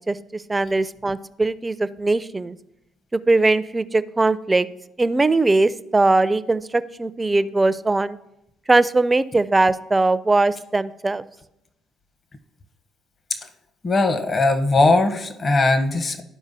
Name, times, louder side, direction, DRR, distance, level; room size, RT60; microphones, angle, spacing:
voice 1, 0.1-2.6 3.1-4.7 5.0-8.2 8.7-11.2, right 2 dB, 20° right, 15 dB, 0.4 m, -20 dB
voice 2, 13.8-16.2, left 2 dB, 40° left, 7 dB, 0.9 m, -19 dB
12.5 x 4.8 x 2.7 m, 0.84 s
hypercardioid pair, 60°, 0 cm